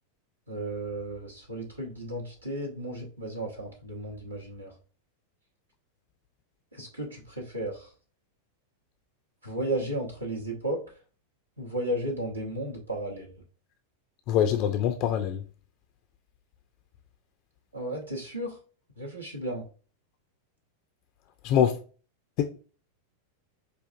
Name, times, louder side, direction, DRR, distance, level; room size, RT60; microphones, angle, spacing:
voice 1, 0.5-4.7 6.8-7.9 9.4-10.8 11.6-13.3 17.7-18.6 19.0-19.6, right 1 dB, 85° right, 0.8 m, -34 dB
voice 2, 14.3-15.4 21.4-21.8 22.4-22.5, left 9 dB, 40° left, 0.3 m, -24 dB
4.9 x 2.5 x 2.3 m
figure-of-eight pair, 90°, 0 cm